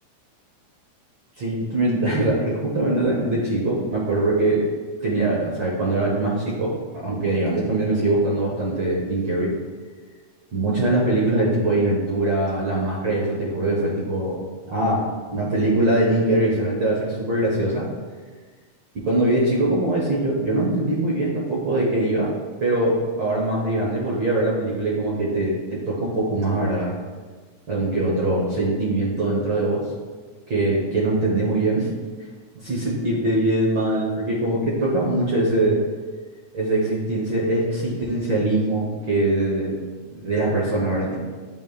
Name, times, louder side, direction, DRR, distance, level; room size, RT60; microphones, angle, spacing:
voice 1, 1.4-4.6 5.0-9.5 10.5-14.4 14.7-15.0 15.3-17.9 18.9-22.3 22.6-27.0 27.7-29.9 30.5-31.9 32.6-35.8 36.5-39.8 40.1-41.2, right 2 dB, 65° right, -5 dB, 1.2 m, -22 dB
10.5 x 3.9 x 2.3 m, 1.4 s
omnidirectional pair, 3.3 m